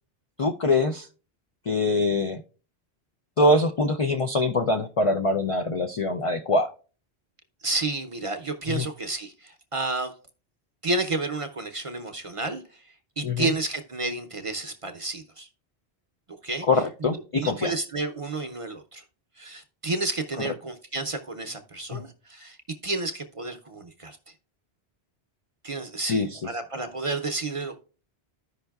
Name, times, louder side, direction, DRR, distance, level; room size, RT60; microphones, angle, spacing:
voice 1, 0.4-1.1 1.7-2.4 3.4-6.7 8.7-8.8 13.2-13.5 16.7-17.7 21.9-22.0 26.1-26.4, left 2 dB, 60° left, 6 dB, 0.3 m, -23 dB
voice 2, 7.6-10.1 10.8-12.8 13.2-15.5 16.4-16.7 17.3-19.0 19.4-22.6 22.8-24.2 25.6-27.8, right 2 dB, 40° right, 5 dB, 0.5 m, -31 dB
14.0 x 5.3 x 2.3 m, 0.38 s
omnidirectional pair, 1.1 m